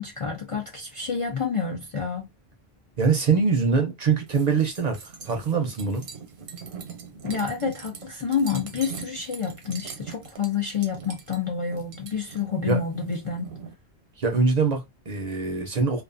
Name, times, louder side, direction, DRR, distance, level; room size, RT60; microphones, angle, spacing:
voice 1, 0.0-2.3 7.2-13.6, left 6 dB, 50° left, 0.4 m, -28 dB
voice 2, 3.0-6.1 12.7-12.8 14.2-16.0, right 5 dB, 50° right, 0.6 m, -23 dB
sound 1, 4.3-13.7, right 6 dB, 90° right, 0.9 m, -42 dB
2.3 x 2.3 x 2.4 m
omnidirectional pair, 1.0 m